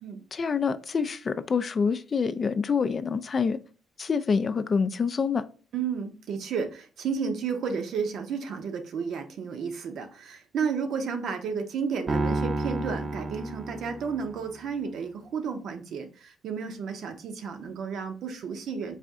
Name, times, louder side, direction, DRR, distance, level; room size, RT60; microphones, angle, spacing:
voice 1, 0.3-3.6 4.0-5.4, left 5 dB, 40° left, 0.3 m, -26 dB
voice 2, 5.7-19.0, right 6 dB, 70° right, 0.7 m, -32 dB
Piano, 12.1-14.5, right 2 dB, 30° right, 0.6 m, -30 dB
4.1 x 2.5 x 3.5 m
cardioid pair, 90°, 0 cm